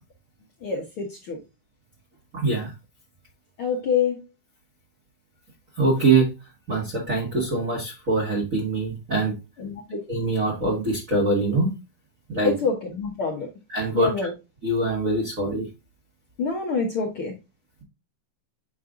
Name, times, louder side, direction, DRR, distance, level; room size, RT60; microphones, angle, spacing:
voice 1, 0.6-1.4 3.6-4.2 9.6-10.0 12.4-13.5 13.9-14.3 16.4-17.3, left 5 dB, 55° left, -1 dB, 1.6 m, -26 dB
voice 2, 2.3-2.7 5.8-6.3 6.7-9.3 9.9-11.7 12.3-12.5 13.7-14.1 14.6-15.7, right 3 dB, 30° right, -2 dB, 1.6 m, -23 dB
7.7 x 5.4 x 2.5 m, 0.25 s
omnidirectional pair, 3.6 m